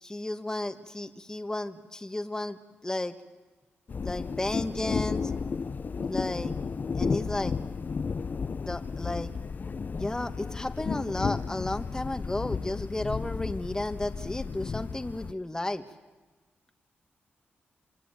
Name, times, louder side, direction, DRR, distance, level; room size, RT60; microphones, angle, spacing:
voice 1, 0.0-3.1 4.0-5.3 6.1-6.5 6.9-7.6 8.6-9.3 9.9-15.8, left 1 dB, 15° left, 8 dB, 1.5 m, -33 dB
sound 1, 3.9-15.3, left 5 dB, 50° left, 0.8 m, -33 dB
25.5 x 24.5 x 9.1 m, 1.3 s
cardioid pair, 70°, 4 cm